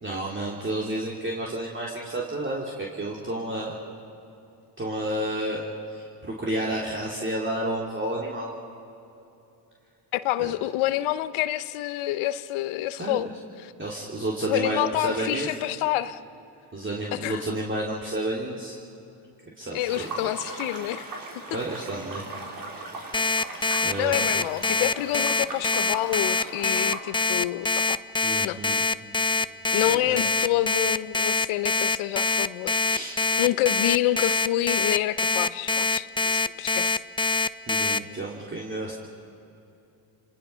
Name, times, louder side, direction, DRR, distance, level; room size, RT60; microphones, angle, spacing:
voice 1, 0.0-3.8 4.8-5.6 5.9-8.5 10.4-10.5 13.0-13.3 13.8-15.5 16.7-18.8 19.6-20.1 21.5-22.2 23.2-23.3 23.8-24.4 28.2-28.8 29.9-30.2 32.8-33.2 37.7-39.0, right 1 dB, 25° right, -3 dB, 3.2 m, -31 dB
voice 2, 10.1-13.3 13.6-13.7 14.5-16.2 17.2-17.4 19.7-21.1 24.0-28.0 28.4-28.6 29.7-32.8 33.4-36.9, left 14 dB, 80° left, 14 dB, 1.0 m, -27 dB
sound 1, 19.9-27.0, right 2 dB, 45° right, 4.7 m, -38 dB
Alarm, 23.1-38.0, left 4 dB, 10° left, 0.5 m, -24 dB
29.5 x 19.0 x 5.7 m, 2.8 s
supercardioid pair, 70°, 48 cm